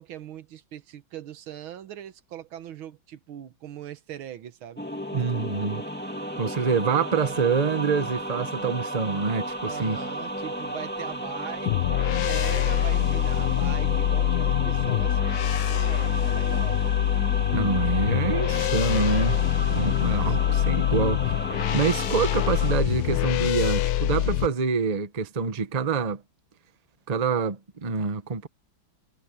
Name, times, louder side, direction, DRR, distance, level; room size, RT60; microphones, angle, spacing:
voice 1, 0.0-4.8 9.6-16.8 20.1-20.5 21.1-21.4, right 10 dB, 80° right, 1.8 m, -41 dB
sound 1, 4.8-22.7, equal, 5° left, 2.0 m, -34 dB
voice 2, 5.1-5.8 6.4-10.0 17.5-19.4 19.7-21.4 21.7-26.2 27.1-28.5, right 5 dB, 25° right, 0.9 m, -26 dB
sound 2, 11.7-24.5, left 12 dB, 75° left, 0.9 m, -24 dB
omnidirectional pair, 2.2 m